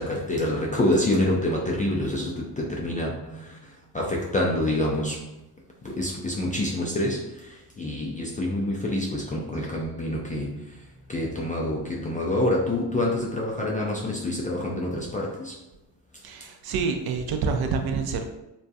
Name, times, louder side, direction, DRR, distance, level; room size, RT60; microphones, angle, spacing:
voice 1, 0.0-5.4 5.8-15.6, left 1 dB, 20° left, -2 dB, 0.3 m, -27 dB
voice 2, 16.2-18.3, right 5 dB, 50° right, 5 dB, 0.5 m, -27 dB
2.4 x 2.2 x 2.6 m, 0.94 s
hypercardioid pair, 45°, 50 cm